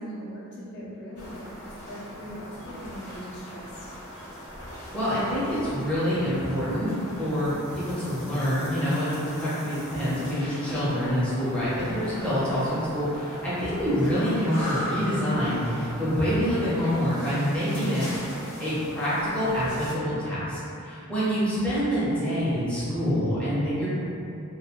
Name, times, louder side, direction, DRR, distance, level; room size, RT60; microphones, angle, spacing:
voice 1, 0.0-3.9, equal, 55° left, -9 dB, 0.6 m, -40 dB
sound 1, 1.2-19.9, equal, 90° left, 0.9 m, -39 dB
voice 2, 4.9-18.1 18.6-23.9, equal, 5° left, -12 dB, 0.6 m, -26 dB
2.2 x 2.2 x 2.8 m, 2.7 s
head